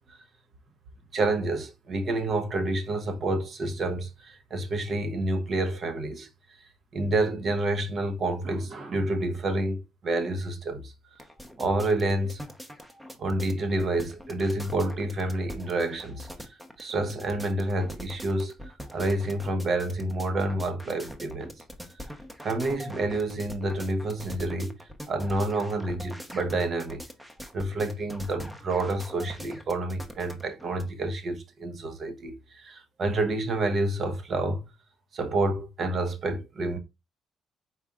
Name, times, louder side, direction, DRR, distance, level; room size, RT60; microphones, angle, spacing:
voice 1, 1.1-6.3 6.9-10.9 11.6-12.4 13.2-16.3 16.8-18.5 18.9-21.5 22.4-24.8 25.1-27.0 27.5-34.6 35.1-36.8, right 2 dB, 50° right, 0.9 m, -28 dB
sound 1, 11.2-30.8, equal, 5° right, 0.8 m, -43 dB
5.0 x 4.3 x 2.4 m
cardioid pair, 90°, 0 cm